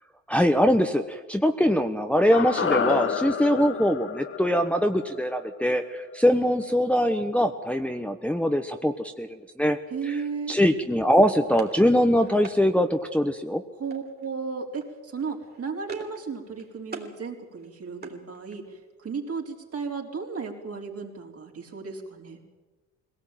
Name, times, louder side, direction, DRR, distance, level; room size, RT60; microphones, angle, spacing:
voice 1, 0.3-9.8 10.1-10.2 10.5-13.6, equal, 5° left, 5 dB, 1.2 m, -22 dB
sound 1, 2.3-6.6 6.9-7.0, left 7 dB, 45° left, 1.3 m, -30 dB
voice 2, 9.9-10.6 13.7-22.4, right 5 dB, 50° right, 2 dB, 4.2 m, -34 dB
sound 2, 11.2-12.6 13.9-14.3 14.6-14.9 15.2-16.2 16.5-17.1 17.5-18.8, right 4 dB, 35° right, 3.5 m, -42 dB
21.5 x 17.5 x 9.1 m, 1.2 s
cardioid pair, 90°, 30 cm